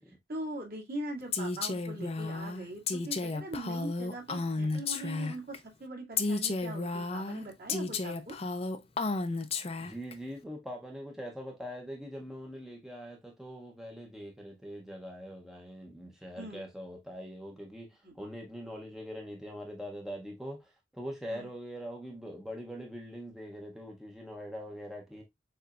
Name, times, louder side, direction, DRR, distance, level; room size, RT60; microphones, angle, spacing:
voice 1, 0.3-8.4 16.4-16.6 18.0-18.1 21.3-21.5, right 1 dB, 55° right, 2.3 m, -41 dB
Female speech woman speaking, 1.3-5.6 6.2-10.1, left 3 dB, 35° left, 0.5 m, -33 dB
voice 2, 9.8-25.2, equal, ahead, 0.8 m, -43 dB
6.8 x 3.2 x 2.4 m
head